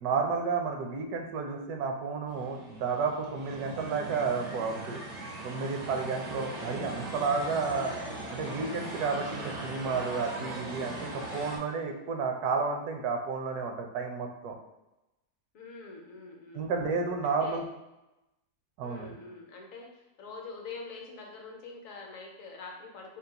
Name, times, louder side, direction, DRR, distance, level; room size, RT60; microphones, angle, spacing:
voice 1, 0.0-5.0 5.4-7.9 8.3-14.5 16.5-17.7 18.8-19.1, right 4 dB, 75° right, 3 dB, 1.1 m, -31 dB
sound 1, 2.3-11.6, right 2 dB, 60° right, 0.4 m, -40 dB
voice 2, 6.1-6.9 15.5-16.7 17.2-17.6 18.8-23.2, left 4 dB, 65° left, 0 dB, 1.0 m, -45 dB
3.8 x 2.3 x 3.9 m, 0.97 s
omnidirectional pair, 1.7 m